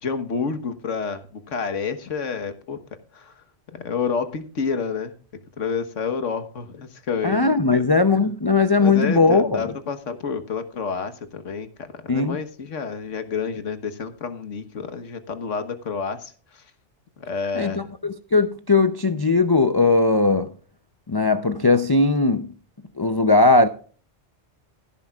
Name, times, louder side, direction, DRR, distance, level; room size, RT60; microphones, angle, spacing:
voice 1, 0.0-2.8 3.1-3.4 3.7-5.2 5.6-7.4 7.7-7.8 8.8-16.6 17.2-17.9, left 5 dB, 90° left, 1.6 m, -29 dB
voice 2, 7.2-9.6 12.1-12.4 17.5-20.5 21.1-22.5 23.0-23.7, left 3 dB, 30° left, 0.4 m, -19 dB
15.5 x 10.5 x 2.3 m
omnidirectional pair, 1.2 m